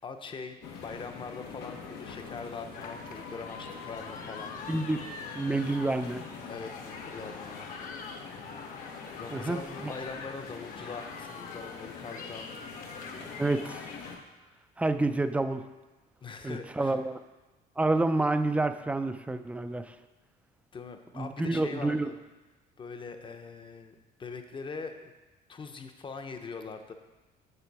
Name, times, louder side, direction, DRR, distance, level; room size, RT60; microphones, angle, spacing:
voice 1, 0.0-4.6 6.5-7.6 9.1-12.5 16.2-17.0 20.7-22.2 22.8-25.1 25.5-26.9, left 4 dB, 30° left, 7 dB, 0.8 m, -42 dB
sound 1, 0.6-14.2, left 5 dB, 85° left, 1.2 m, -44 dB
sound 2, 2.7-14.1, left 4 dB, 50° left, 1.0 m, -45 dB
voice 2, 4.7-5.0 5.3-6.2 9.3-9.9 13.2-13.8 14.8-15.6 16.4-17.2 17.8-19.9 21.2-22.1, right 2 dB, 10° right, 10 dB, 0.4 m, -29 dB
6.8 x 6.6 x 4.8 m, 1.2 s
cardioid pair, 110°, 17 cm